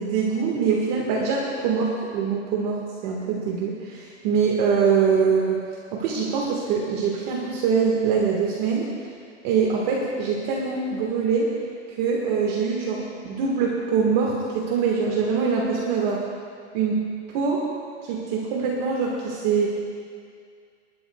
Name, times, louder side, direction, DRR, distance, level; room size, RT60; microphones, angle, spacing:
voice 1, 0.0-5.6 5.9-8.9 9.4-11.5 12.0-16.2 16.7-17.0 17.3-17.7 18.0-19.7, right 5 dB, 40° right, -2 dB, 1.7 m, -23 dB
26.0 x 12.0 x 2.3 m, 2.2 s
supercardioid pair, 155°, 35 cm